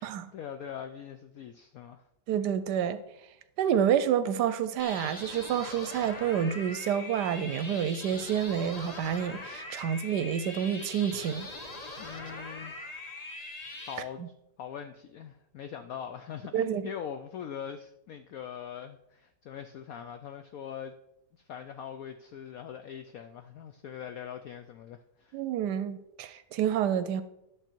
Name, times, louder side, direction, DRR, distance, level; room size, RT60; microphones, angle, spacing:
voice 1, 0.0-2.1 12.0-12.7 13.9-14.2 14.6-20.9 21.4-25.4, left 8 dB, 80° left, 0.8 m, -42 dB
voice 2, 2.3-3.0 3.6-11.5 14.2-14.3 16.5-16.9 25.3-27.2, right 9 dB, 75° right, 1.1 m, -28 dB
sound 1, 4.8-13.9, left 2 dB, 30° left, 0.9 m, -42 dB
11.0 x 6.8 x 4.4 m
omnidirectional pair, 2.0 m